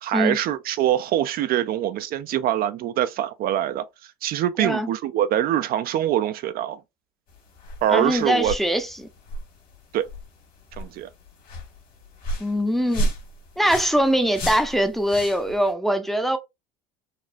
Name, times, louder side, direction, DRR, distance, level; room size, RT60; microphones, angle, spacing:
voice 1, 0.0-6.8 7.8-8.5 9.9-10.1 10.8-11.1, right 11 dB, 45° right, 0.4 m, -24 dB
voice 2, 4.6-4.9 7.9-9.1 12.4-13.1 13.6-16.4, equal, ahead, 0.6 m, -22 dB
sound 1, 7.3-15.7, right 1 dB, 45° left, 1.6 m, -34 dB
4.1 x 2.0 x 2.5 m
supercardioid pair, 100°, 21 cm